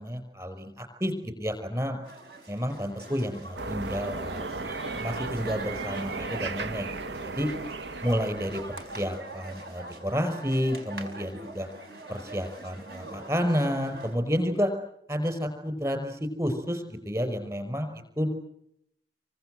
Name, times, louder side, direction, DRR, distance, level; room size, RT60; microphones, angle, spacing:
voice 1, 0.0-2.0 2.5-7.5 8.0-11.7 12.1-14.7 15.1-18.3, equal, 20° right, 8 dB, 5.3 m, -30 dB
sound 1, 2.0-14.2, right 2 dB, 60° right, 5.3 m, -44 dB
sound 2, 3.6-9.2, right 3 dB, 85° right, 1.1 m, -36 dB
28.5 x 24.5 x 7.9 m, 0.77 s
head